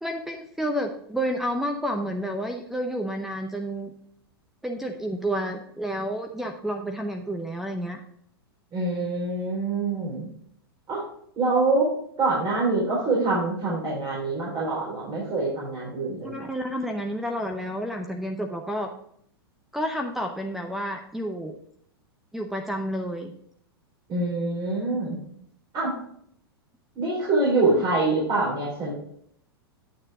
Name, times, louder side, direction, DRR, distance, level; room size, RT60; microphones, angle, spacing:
voice 1, 0.0-3.9 4.6-8.0 16.2-18.9 19.7-21.6 22.3-23.3, equal, ahead, 3 dB, 0.7 m, -30 dB
voice 2, 8.7-10.2 10.9-11.0 11.4-11.9 12.2-16.5 24.1-25.2 25.7-25.9 27.0-28.9, right 3 dB, 35° right, -7 dB, 4.3 m, -25 dB
9.8 x 6.6 x 3.6 m, 0.66 s
hypercardioid pair, 105°, 13 cm